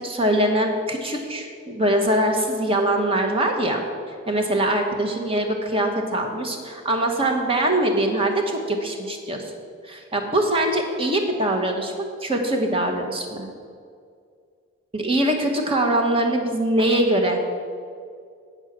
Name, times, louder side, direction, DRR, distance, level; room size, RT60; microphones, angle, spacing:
voice 1, 0.0-3.8 4.3-9.5 9.8-13.5 14.9-17.4, right 1 dB, 25° right, 3 dB, 1.0 m, -23 dB
8.1 x 6.3 x 7.4 m, 2.2 s
head